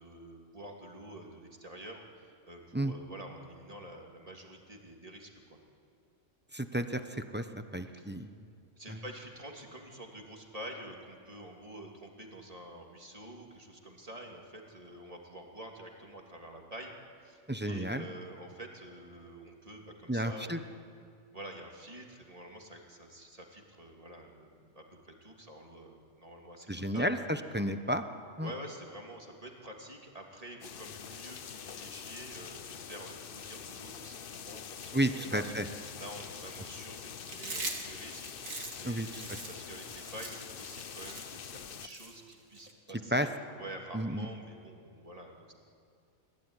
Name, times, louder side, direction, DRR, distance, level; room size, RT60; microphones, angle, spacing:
voice 1, 0.0-5.6 7.9-8.1 8.8-16.9 17.2-20.6 21.3-27.0 28.4-35.5 35.9-39.1 39.5-43.3 43.6-45.5, right 1 dB, 25° right, 0 dB, 3.1 m, -48 dB
voice 2, 6.5-7.5 7.7-8.3 8.9-9.0 17.5-18.0 20.1-20.6 26.7-28.0 28.4-28.5 34.9-35.6 38.8-39.2 43.1-43.3 43.9-44.3, right 1 dB, 10° right, 7 dB, 0.9 m, -32 dB
sound 1, 30.6-41.9, left 7 dB, 50° left, 0.8 m, -45 dB
Chewing mastication, 37.2-42.7, right 3 dB, 65° right, 3.0 m, -42 dB
29.5 x 16.5 x 10.0 m, 2.3 s
omnidirectional pair, 1.5 m